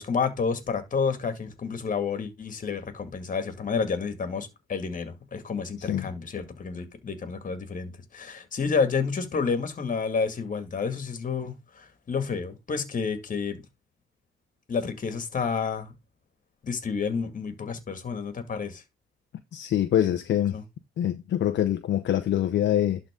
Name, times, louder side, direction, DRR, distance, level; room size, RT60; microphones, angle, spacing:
voice 1, 0.0-13.6 14.7-15.9 16.6-18.8 20.5-20.6, left 5 dB, 40° left, 2.0 m, -30 dB
voice 2, 5.8-6.1 19.5-20.6 21.0-23.0, left 11 dB, 65° left, 0.8 m, -25 dB
11.5 x 3.9 x 3.7 m
cardioid pair, 90°, 20 cm